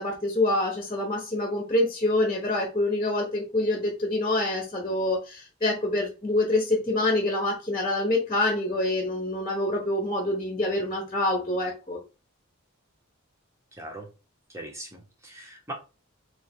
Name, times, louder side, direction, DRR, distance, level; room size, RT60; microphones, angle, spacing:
voice 1, 0.0-12.0, left 2 dB, 25° left, 0 dB, 1.1 m, -26 dB
voice 2, 13.8-14.1 14.5-15.7, right 1 dB, 15° right, 1 dB, 1.1 m, -40 dB
3.6 x 3.3 x 3.5 m, 0.31 s
head